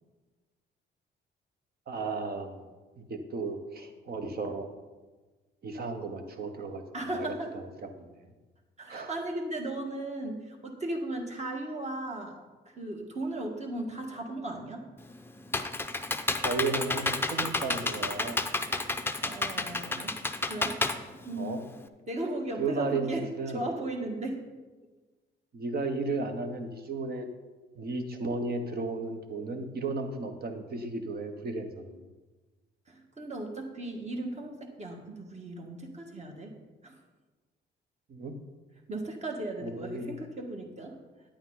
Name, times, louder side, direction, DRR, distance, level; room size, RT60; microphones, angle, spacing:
voice 1, 1.9-2.7 3.0-4.7 5.6-6.8 7.1-8.2 8.9-9.1 16.4-18.4 21.4-21.6 22.6-23.1 23.4-23.6 25.5-27.3 27.7-32.0 38.1-38.4 39.6-40.1, right 3 dB, 50° right, 6 dB, 1.2 m, -34 dB
voice 2, 6.9-7.5 8.8-14.8 19.2-20.2 20.5-20.8 21.2-21.6 22.1-23.3 23.5-24.4 32.9-36.6 36.8-37.0 38.9-41.0, right 2 dB, 35° right, 2 dB, 1.8 m, -36 dB
Computer keyboard, 15.0-21.9, left 2 dB, 10° left, 0.6 m, -31 dB
10.0 x 8.9 x 4.0 m, 1.3 s
cardioid pair, 90°, 20 cm